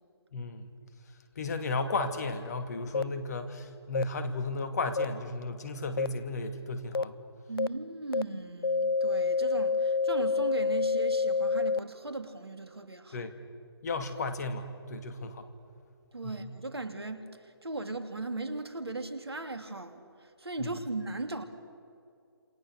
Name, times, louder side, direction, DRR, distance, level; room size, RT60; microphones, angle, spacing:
voice 1, 0.3-0.7 1.4-7.2 13.1-13.3 13.8-15.5 16.2-16.5 20.6-20.8, left 3 dB, 40° left, 2.5 m, -34 dB
sound 1, 2.9-3.0 3.9-4.0 5.0-5.1 6.0-6.1 6.9-7.0 7.6-7.7 8.1-8.2 8.6-11.8, left 4 dB, 65° left, 0.6 m, -27 dB
voice 2, 7.5-13.3 16.1-21.4, right 2 dB, 75° right, 2.8 m, -38 dB
28.0 x 27.5 x 6.6 m
figure-of-eight pair, 145°, 13 cm